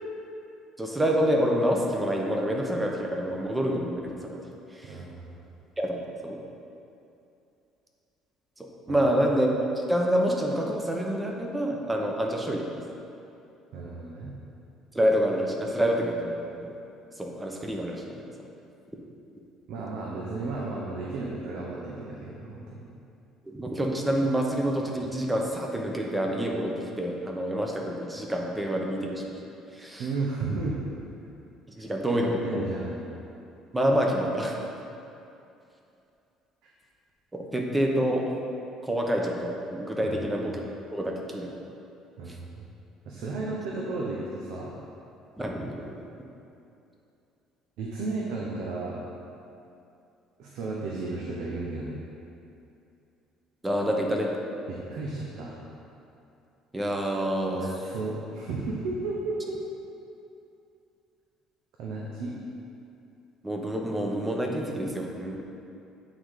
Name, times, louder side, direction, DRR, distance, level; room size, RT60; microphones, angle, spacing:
voice 1, 0.8-4.4 4.7-5.0 5.8-6.4 8.6-12.8 14.9-16.7 17.2-18.2 23.5-29.4 29.8-30.1 31.8-32.4 33.7-34.5 37.3-38.2 38.8-40.6 40.9-41.5 42.3-42.4 45.4-45.8 53.6-54.3 56.7-57.7 63.4-65.4, equal, 10° right, 0 dB, 0.9 m, -27 dB
voice 2, 4.9-5.2 8.9-9.0 13.7-14.3 19.7-22.8 30.0-30.8 32.1-33.0 40.0-40.2 42.2-42.6 43.1-44.7 47.8-49.0 50.4-52.0 54.7-55.6 57.5-59.6 61.8-62.4, right 3 dB, 75° right, -3 dB, 0.9 m, -33 dB
8.6 x 3.9 x 4.8 m, 2.7 s
cardioid pair, 120°, 0 cm